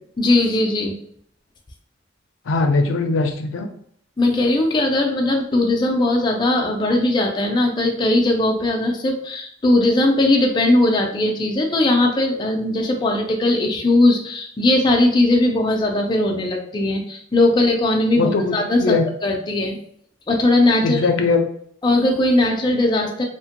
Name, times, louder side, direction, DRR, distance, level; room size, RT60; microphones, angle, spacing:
voice 1, 0.2-1.0 4.2-19.0 19.2-19.8 20.3-21.1 21.8-23.2, left 2 dB, 25° left, 1 dB, 0.4 m, -19 dB
voice 2, 2.5-3.7 18.2-19.0 20.8-21.4, left 3 dB, 90° left, 5 dB, 0.4 m, -20 dB
2.9 x 2.1 x 2.8 m, 0.64 s
head